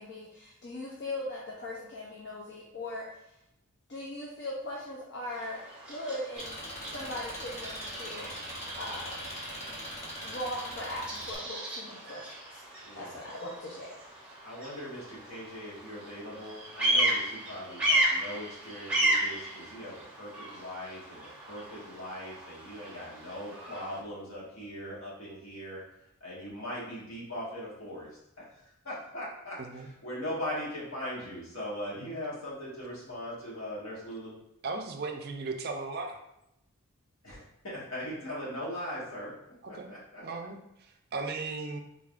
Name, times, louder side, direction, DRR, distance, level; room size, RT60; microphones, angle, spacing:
voice 1, 0.0-3.1 3.9-5.6 5.9-8.3 8.8-9.3 10.2-12.6 12.9-14.0, left 1 dB, 50° left, -4 dB, 0.6 m, -39 dB
Bird vocalization bird call bird song, 5.2-24.0, right 1 dB, 5° right, 0.7 m, -34 dB
Engine, 6.4-11.4, equal, 30° left, 0.9 m, -42 dB
voice 2, 12.8-13.2 14.4-25.8 26.2-28.1 28.4-28.5 28.8-34.4 37.2-39.3 39.7-40.2, equal, 70° left, -7 dB, 1.5 m, -40 dB
voice 3, 34.6-36.2 39.6-39.9 40.2-41.8, right 3 dB, 45° right, 5 dB, 0.3 m, -37 dB
3.7 x 3.4 x 2.4 m, 0.83 s
head